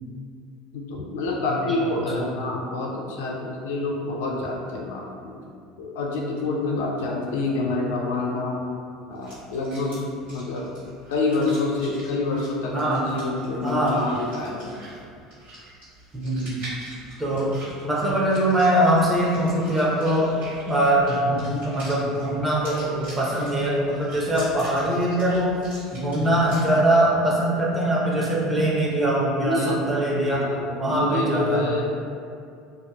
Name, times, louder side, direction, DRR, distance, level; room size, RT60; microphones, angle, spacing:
voice 1, 0.7-8.6 9.1-10.0 10.3-10.6 11.1-14.9 17.3-17.5 29.4-29.9 30.2-31.9, left 2 dB, 65° left, -1 dB, 0.3 m, -27 dB
sound 1, 9.1-26.6, right 1 dB, 65° right, 1.5 m, -44 dB
voice 2, 13.6-14.0 16.1-16.6 17.2-17.6 17.8-20.3 20.7-25.6 25.9-30.5 30.8-31.7, right 1 dB, 15° right, -6 dB, 0.7 m, -22 dB
2.6 x 2.2 x 2.2 m, 2.4 s
figure-of-eight pair, 70°, 0 cm